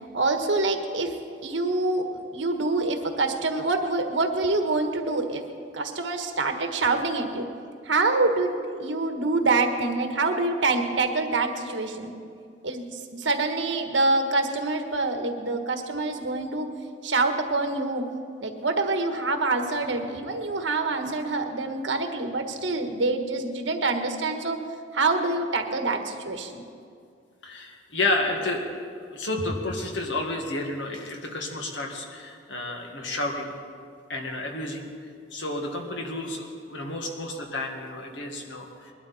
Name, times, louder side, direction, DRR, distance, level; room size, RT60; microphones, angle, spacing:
voice 1, 0.1-1.2 1.4-5.4 5.7-7.5 7.8-12.1 12.6-16.7 17.0-18.1 18.4-24.6 24.9-26.6, right 3 dB, 85° right, 5 dB, 1.4 m, -26 dB
voice 2, 27.4-28.8 29.1-33.5 34.1-34.9 35.3-38.9, left 2 dB, 85° left, 2 dB, 1.9 m, -31 dB
21.0 x 12.0 x 4.3 m, 2.3 s
head